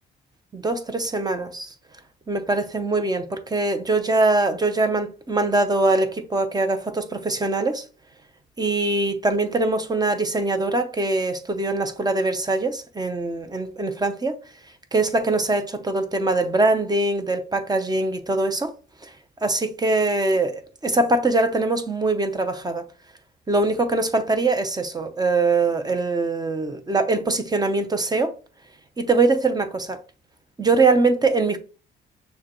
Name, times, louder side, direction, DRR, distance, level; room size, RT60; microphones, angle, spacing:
voice 1, 0.5-1.7 2.3-7.8 8.6-14.4 14.9-18.7 19.0-19.1 19.4-22.8 23.5-28.3 29.0-30.0 30.6-31.6, right 2 dB, 20° right, 0.7 m, -22 dB
6.3 x 2.3 x 2.9 m
cardioid pair, 90°, 20 cm